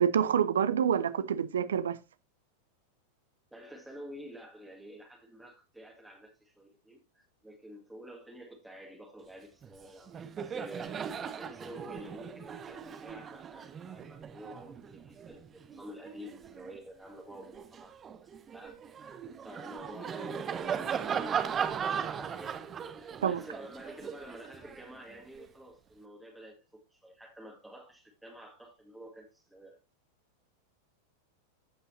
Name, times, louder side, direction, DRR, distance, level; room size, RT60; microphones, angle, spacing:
voice 1, 0.0-2.0 23.2-23.4, right 8 dB, 65° right, 0.7 m, -27 dB
voice 2, 3.5-17.9 18.2-22.6 23.0-29.8, equal, 5° right, 2.0 m, -49 dB
Laughter, 9.6-9.8 10.1-16.8 17.3-25.5, right 7 dB, 25° right, 0.8 m, -38 dB
15.5 x 5.5 x 2.7 m
figure-of-eight pair, 90°, 0 cm